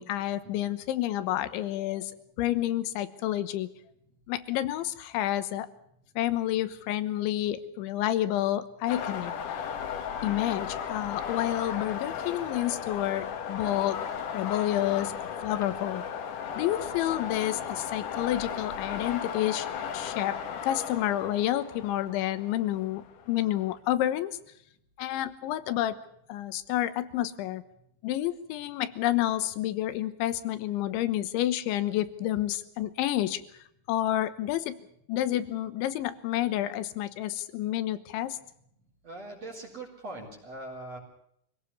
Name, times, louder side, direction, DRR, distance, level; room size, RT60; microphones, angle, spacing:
voice 1, 0.0-2.1 2.4-3.7 4.3-5.7 6.2-9.3 10.2-14.0 14.3-15.2 15.4-16.0 16.6-19.7 19.9-24.4 25.0-26.0 26.3-27.6 28.0-33.4 33.9-34.8 35.1-38.4, left 13 dB, 80° left, 14 dB, 3.4 m, -29 dB
sound 1, 8.9-23.7, left 7 dB, 55° left, 2.5 m, -36 dB
voice 2, 39.0-41.0, right 2 dB, 35° right, 0 dB, 4.6 m, -41 dB
25.0 x 17.5 x 7.0 m, 0.71 s
omnidirectional pair, 5.5 m